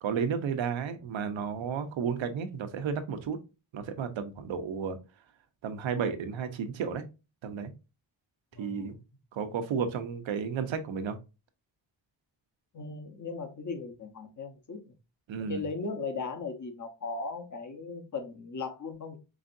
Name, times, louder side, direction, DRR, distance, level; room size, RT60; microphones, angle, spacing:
voice 1, 0.0-3.4 3.7-5.0 5.6-7.0 7.4-7.7 8.6-8.9 9.3-11.2 15.3-15.6, right 6 dB, 80° right, 9 dB, 0.8 m, -32 dB
voice 2, 8.5-9.0 12.7-14.9 15.5-19.2, left 4 dB, 40° left, 5 dB, 1.1 m, -37 dB
4.9 x 3.4 x 2.6 m, 0.29 s
cardioid pair, 75°, 46 cm